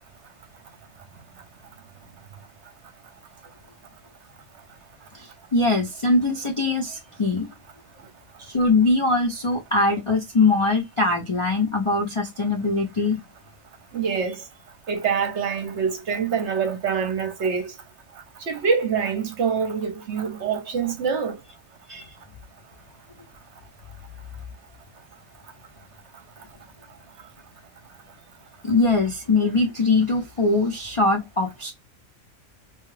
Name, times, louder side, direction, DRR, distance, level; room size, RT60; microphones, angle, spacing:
voice 1, 5.1-7.5 8.4-13.2 21.9-22.0 28.6-31.7, left 3 dB, 40° left, 0.4 m, -22 dB
voice 2, 13.9-14.4 14.9-17.7 18.5-21.4, right 6 dB, 60° right, 1.0 m, -25 dB
2.9 x 2.3 x 3.1 m
omnidirectional pair, 1.4 m